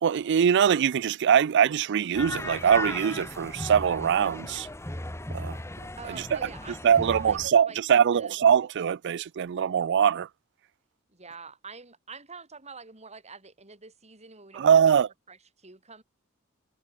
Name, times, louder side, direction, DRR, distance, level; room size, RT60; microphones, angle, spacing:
voice 1, 0.0-4.7 5.3-5.6 6.1-6.4 6.8-10.3 14.5-15.1, right 8 dB, 60° right, 0.4 m, -22 dB
sound 1, 2.1-7.5, left 1 dB, 15° left, 1.5 m, -36 dB
voice 2, 6.0-8.4 11.1-16.0, right 4 dB, 30° right, 5.8 m, -46 dB
head